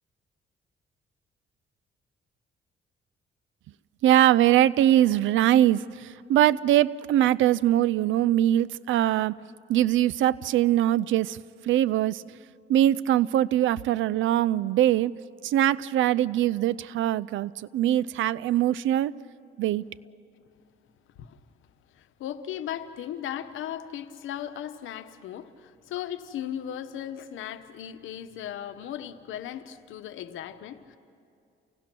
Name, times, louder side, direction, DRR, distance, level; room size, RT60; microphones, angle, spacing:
voice 1, 4.0-9.3 9.7-11.4 11.7-12.2 12.7-15.1 15.4-19.1 19.6-19.8, right 12 dB, 75° right, 0.5 m, -22 dB
voice 2, 21.9-31.0, left 10 dB, 80° left, 1.0 m, -37 dB
28.5 x 17.5 x 6.0 m
cardioid pair, 90°, 20 cm